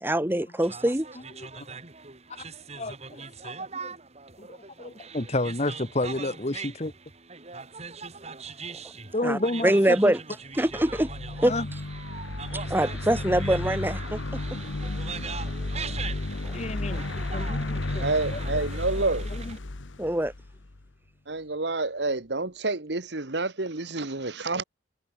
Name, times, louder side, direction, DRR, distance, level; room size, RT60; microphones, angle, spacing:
voice 1, 0.0-1.1 8.7-8.8 9.2-10.2 10.6-11.1 11.4-11.5 12.7-14.4 16.4-16.5 20.0-20.3, right 1 dB, 10° right, 1.4 m, -24 dB
sound 1, 0.6-19.6, right 5 dB, 35° right, 2.5 m, -41 dB
voice 2, 2.8-3.3 3.7-3.9 4.4-6.9 9.1-10.1 11.5-11.7 16.5-18.4 19.3-19.6, left 2 dB, 35° left, 1.4 m, -31 dB
sound 2, 10.6-20.8, left 2 dB, 85° left, 1.2 m, -33 dB
voice 3, 18.0-19.3 21.3-24.6, right 3 dB, 65° right, 1.6 m, -28 dB
head